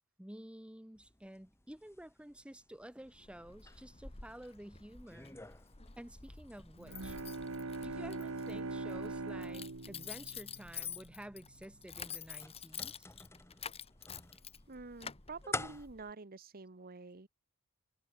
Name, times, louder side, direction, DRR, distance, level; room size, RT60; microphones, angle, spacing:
voice 1, 0.2-5.4 6.0-7.2 7.8-13.1, right 1 dB, 5° right, 0.7 m, -51 dB
sound 1, 0.9-15.9, left 2 dB, 10° left, 1.6 m, -51 dB
Keys jangling, 3.0-16.1, left 7 dB, 25° left, 1.5 m, -49 dB
Bowed string instrument, 6.8-11.3, right 3 dB, 70° right, 1.3 m, -42 dB
voice 2, 14.7-17.3, right 4 dB, 40° right, 1.2 m, -48 dB
head